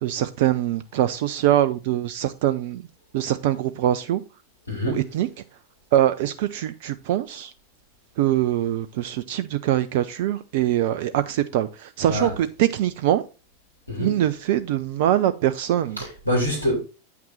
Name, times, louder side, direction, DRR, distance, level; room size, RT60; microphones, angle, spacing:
voice 1, 0.0-2.8 3.1-4.2 4.9-5.3 5.9-7.5 8.2-13.2 14.0-16.0, right 12 dB, 50° right, 0.5 m, -23 dB
voice 2, 4.7-5.0 12.1-12.3 13.9-14.1 16.0-16.8, equal, 85° left, 3.3 m, -25 dB
8.6 x 5.9 x 4.1 m
figure-of-eight pair, 90°, 0 cm